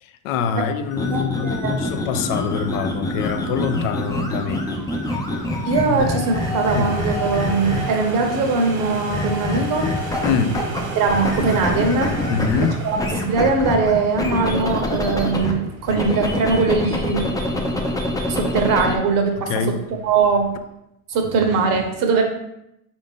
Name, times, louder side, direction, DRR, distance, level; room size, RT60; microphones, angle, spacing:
voice 1, 0.0-4.7 5.9-6.1 6.7-6.9 10.2-10.7 12.3-12.8 19.5-19.8, left 6 dB, 70° left, 0.5 m, -24 dB
sound 1, 0.9-8.1 9.1-10.8 11.1-15.5 15.9-19.0, left 1 dB, 10° left, 0.4 m, -25 dB
voice 2, 1.1-1.8 5.6-9.9 10.9-12.1 12.8-13.0 13.2-17.3 18.3-19.5 20.0-20.5 21.1-22.2, right 4 dB, 50° right, 0.8 m, -21 dB
sound 2, 2.3-20.6, right 3 dB, 70° right, 1.0 m, -35 dB
3.8 x 2.6 x 3.6 m
supercardioid pair, 105°, 41 cm